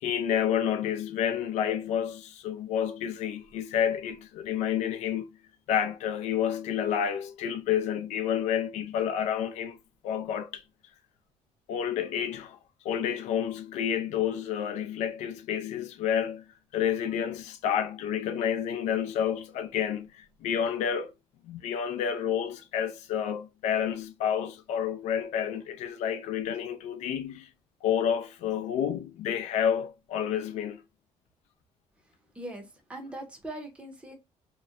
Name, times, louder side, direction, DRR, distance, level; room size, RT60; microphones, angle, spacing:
voice 1, 0.0-5.3 5.7-9.8 10.0-10.6 11.7-12.6 12.8-16.4 16.7-21.1 21.5-27.5 27.8-30.8, left 9 dB, 85° left, 0.4 m, -29 dB
voice 2, 32.3-34.1, right 1 dB, 10° right, 0.6 m, -41 dB
2.8 x 2.0 x 2.4 m
cardioid pair, 155°, 11 cm